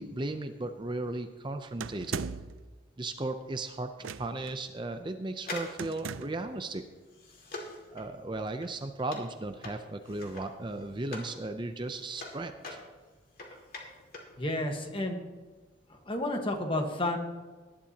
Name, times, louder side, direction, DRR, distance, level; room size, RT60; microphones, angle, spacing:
voice 1, 0.0-2.2 3.0-6.8 7.9-12.8, right 2 dB, 25° right, 7 dB, 0.5 m, -36 dB
sound 1, 1.8-2.6 4.0-4.5 5.8-6.5, right 6 dB, 90° right, 0.5 m, -38 dB
sound 2, 5.4-11.4 11.7-14.4 14.6-14.7, left 2 dB, 50° left, 2.2 m, -44 dB
voice 2, 14.4-15.2 16.1-17.2, left 1 dB, 25° left, 3 dB, 1.4 m, -31 dB
19.0 x 11.0 x 2.9 m, 1.3 s
head